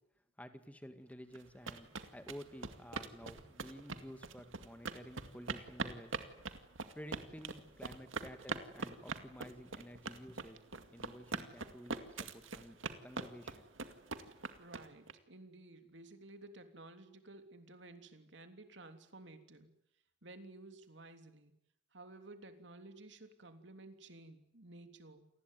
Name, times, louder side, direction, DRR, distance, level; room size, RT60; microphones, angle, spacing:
voice 1, 0.4-6.1 6.9-10.6 10.9-12.8 13.0-13.7, equal, 5° left, 8 dB, 2.1 m, -52 dB
sound 1, 1.3-15.1, right 4 dB, 90° right, 2.1 m, -42 dB
voice 2, 14.6-19.7 20.2-21.6 21.9-25.3, right 2 dB, 65° right, 7 dB, 3.1 m, -54 dB
28.5 x 19.5 x 9.3 m, 0.79 s
head